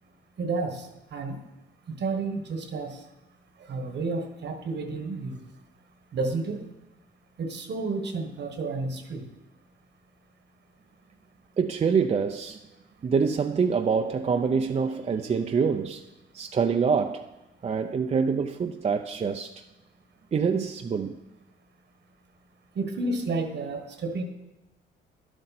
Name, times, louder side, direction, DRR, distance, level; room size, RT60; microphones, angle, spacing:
voice 1, 0.4-1.4 1.9-3.0 3.6-5.4 6.1-6.6 7.4-9.2 22.7-24.2, right 3 dB, 60° right, 1.4 m, -31 dB
voice 2, 11.6-12.6 13.0-16.0 16.3-17.3 17.6-19.5 20.3-21.2, right 6 dB, 35° right, 0.5 m, -25 dB
11.0 x 7.7 x 4.2 m
cardioid pair, 90°, 20 cm